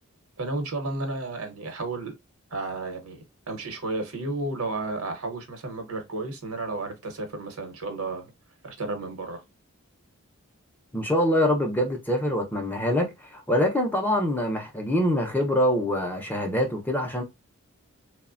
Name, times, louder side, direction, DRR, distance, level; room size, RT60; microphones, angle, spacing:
voice 1, 0.4-2.1 2.5-8.3 8.6-9.4, right 2 dB, 80° right, 0.9 m, -32 dB
voice 2, 10.9-17.2, equal, 10° left, 0.4 m, -24 dB
3.1 x 2.0 x 2.4 m
head